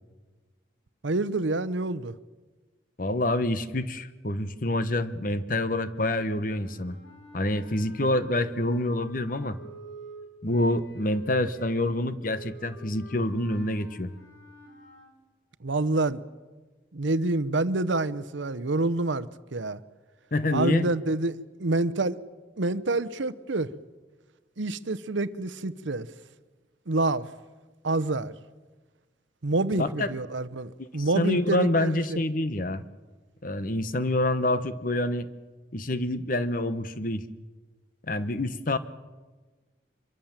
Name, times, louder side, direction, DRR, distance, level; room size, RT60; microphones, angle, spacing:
voice 1, 1.0-2.1 15.6-16.2 16.9-19.8 20.5-22.2 22.6-23.7 24.6-26.1 26.9-27.3 27.8-28.3 29.4-32.2, right 2 dB, 75° right, 0.9 m, -27 dB
voice 2, 3.0-7.0 7.3-9.6 10.4-14.1 20.3-20.9 29.8-30.1 30.8-32.8 33.4-35.3 35.7-37.2 38.1-38.8, left 1 dB, 45° left, 1.1 m, -27 dB
sound 1, 6.4-15.1, right 1 dB, 80° left, 5.7 m, -48 dB
24.5 x 23.0 x 7.4 m
head